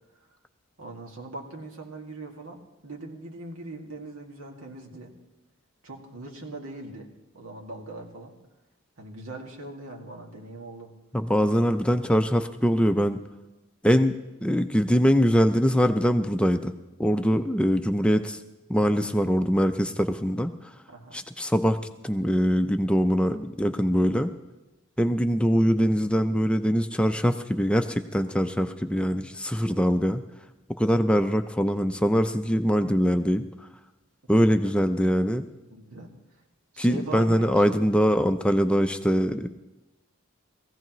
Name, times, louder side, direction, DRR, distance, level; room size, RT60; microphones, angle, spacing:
voice 1, 0.8-5.1 5.8-7.1 7.3-8.3 9.0-10.9 18.2-18.4 20.9-21.2 29.7-29.8 34.6-34.7 35.7-36.4 36.7-38.0, right 2 dB, 90° right, 0 dB, 2.1 m, -41 dB
voice 2, 11.1-13.2 13.8-14.1 14.4-16.7 17.0-18.4 18.7-20.5 21.1-21.8 22.0-24.3 25.0-30.2 30.8-33.4 34.3-35.5 36.8-39.5, equal, 5° left, 7 dB, 0.4 m, -23 dB
19.5 x 15.0 x 3.1 m, 1.0 s
head